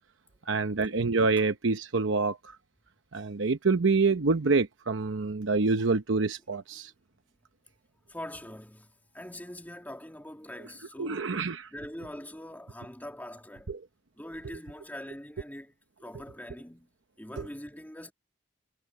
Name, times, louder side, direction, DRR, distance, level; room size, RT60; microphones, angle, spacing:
voice 1, 0.5-2.6 3.1-6.9 11.0-11.7 13.7-13.8 17.4-17.5, right 3 dB, 80° right, 0.8 m, -26 dB
voice 2, 8.1-11.4 11.7-13.8 14.1-15.7 16.0-16.9 17.2-18.1, left 1 dB, 10° left, 2.6 m, -43 dB
head